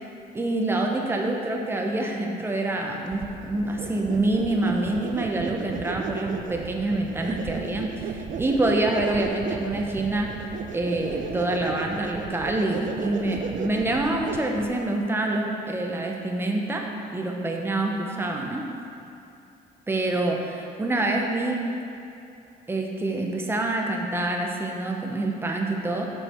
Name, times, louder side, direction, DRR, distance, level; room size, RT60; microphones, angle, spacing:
voice 1, 0.3-10.3 10.7-16.8 17.1-18.7 19.9-21.6 22.7-26.1, right 2 dB, 15° right, 1 dB, 0.8 m, -26 dB
sound 1, 3.1-14.8, right 7 dB, 50° right, 0.4 m, -35 dB
6.1 x 5.1 x 4.4 m, 2.7 s
cardioid pair, 110°, 17 cm